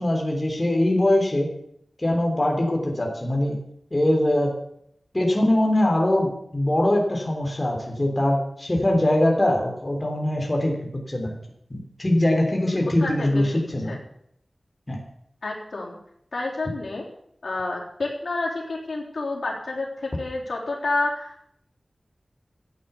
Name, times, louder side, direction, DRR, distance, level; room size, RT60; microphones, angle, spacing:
voice 1, 0.0-1.5 2.0-3.6 3.9-4.5 5.1-10.8 11.1-11.4 11.7-14.0 14.9-15.0, left 1 dB, 25° left, 0 dB, 3.4 m, -22 dB
voice 2, 12.5-13.6 13.9-14.0 15.4-16.0 16.3-17.0 17.4-21.5, left 2 dB, 85° left, -3 dB, 3.8 m, -29 dB
14.0 x 9.2 x 7.1 m, 0.72 s
wide cardioid pair, 85°, 0 cm